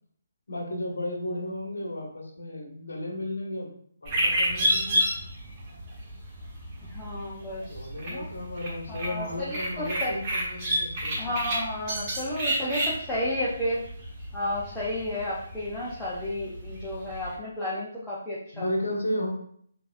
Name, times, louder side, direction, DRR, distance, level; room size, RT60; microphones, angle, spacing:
voice 1, 0.5-3.7 4.0-5.1 7.6-11.3 18.5-19.3, left 1 dB, 60° left, 1 dB, 1.1 m, -34 dB
sound 1, 4.0-17.3, equal, 25° right, 1.1 m, -31 dB
voice 2, 6.9-8.2 8.9-10.1 11.2-13.8 14.3-18.7, left 1 dB, 5° left, -9 dB, 0.8 m, -32 dB
6.7 x 2.8 x 2.5 m, 0.63 s
figure-of-eight pair, 140°, 0 cm